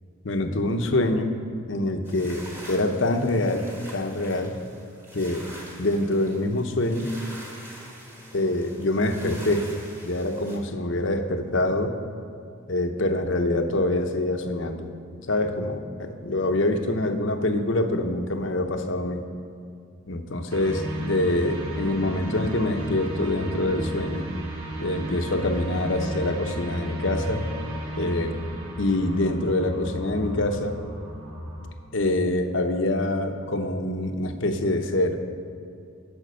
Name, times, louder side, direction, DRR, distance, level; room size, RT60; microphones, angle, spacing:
voice 1, 0.2-1.3 1.7-4.5 5.1-5.5 5.8-7.1 8.3-9.7 10.0-12.0 12.7-14.9 15.3-19.2 20.1-24.3 24.8-27.5 27.9-28.4 28.8-30.8 31.9-35.2, left 1 dB, 60° left, 6 dB, 0.8 m, -25 dB
sound 1, 2.1-10.6, right 1 dB, 10° right, 1.4 m, -44 dB
sound 2, 20.5-31.7, equal, 85° right, 1.7 m, -34 dB
11.0 x 5.8 x 6.5 m, 2.5 s
head